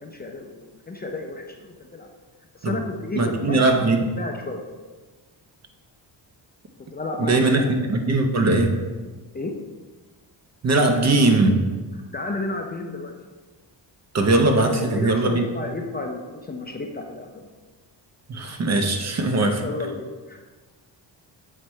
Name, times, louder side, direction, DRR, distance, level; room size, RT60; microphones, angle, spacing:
voice 1, 0.0-2.1 2.5-3.7 4.2-4.6 6.9-7.6 9.3-9.5 12.1-13.1 14.7-17.4 19.6-20.4, left 2 dB, 20° left, 2 dB, 0.5 m, -32 dB
voice 2, 3.1-4.0 7.2-8.8 10.6-11.6 14.1-15.4 18.3-19.6, right 2 dB, 35° right, 4 dB, 0.7 m, -20 dB
7.8 x 3.2 x 4.4 m, 1.3 s
cardioid pair, 115°, 44 cm